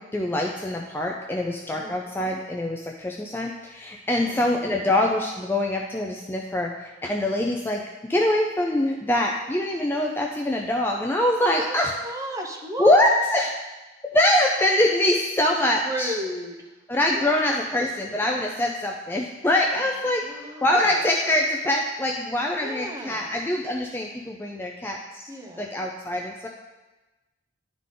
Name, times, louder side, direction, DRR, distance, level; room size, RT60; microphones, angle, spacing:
voice 1, 0.0-7.8 8.1-11.9 12.8-13.5 14.0-16.1 16.9-20.3 20.6-25.2 25.6-26.5, left 1 dB, 10° left, 0 dB, 0.4 m, -24 dB
voice 2, 4.1-4.5 11.4-11.8 12.0-13.0 15.7-16.7 17.1-17.9 20.2-21.0 22.6-23.3 25.3-25.7, right 1 dB, 15° right, 0 dB, 0.8 m, -35 dB
11.0 x 3.7 x 3.8 m, 1.1 s
head